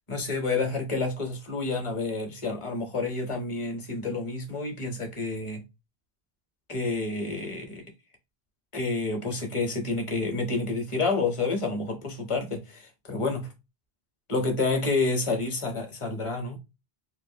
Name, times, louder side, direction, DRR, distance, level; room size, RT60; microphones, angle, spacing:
voice 1, 0.1-5.6 6.7-7.8 8.7-13.5 14.3-16.6, left 3 dB, 30° left, 0.8 m, -29 dB
3.2 x 2.5 x 2.7 m
omnidirectional pair, 1.1 m